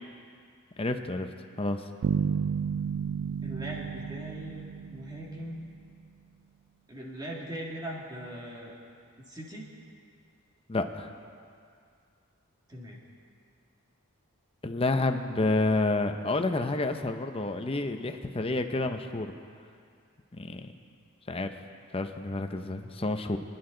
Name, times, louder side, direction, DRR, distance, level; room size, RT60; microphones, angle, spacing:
voice 1, 0.8-1.3 1.6-1.8 10.7-11.1 14.6-19.3 20.3-20.7 21.3-21.6 21.9-23.4, left 2 dB, 25° left, 7 dB, 0.7 m, -29 dB
sound 1, 2.0-5.8, right 7 dB, 65° right, 0.3 m, -32 dB
voice 2, 3.4-4.6 4.9-5.6 6.9-8.8 9.2-9.7 12.7-13.0, right 1 dB, 20° right, -3 dB, 2.1 m, -40 dB
25.5 x 10.5 x 3.9 m, 2.3 s
head